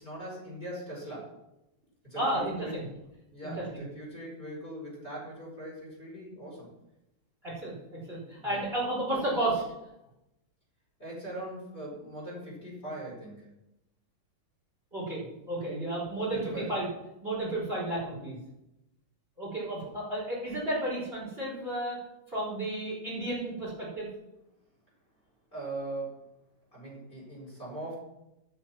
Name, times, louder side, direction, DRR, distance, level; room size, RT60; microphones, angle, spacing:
voice 1, 0.0-1.3 2.0-2.7 3.3-6.7 8.4-8.6 11.0-13.5 16.3-16.8 25.5-26.3 26.7-28.0, right 1 dB, 25° left, -5 dB, 5.5 m, -40 dB
voice 2, 2.2-2.8 3.4-3.8 7.4-9.6 14.9-16.9 17.2-18.4 19.4-22.0 22.3-24.1, right 1 dB, 25° right, -5 dB, 4.1 m, -32 dB
12.5 x 7.4 x 5.9 m, 0.90 s
omnidirectional pair, 2.3 m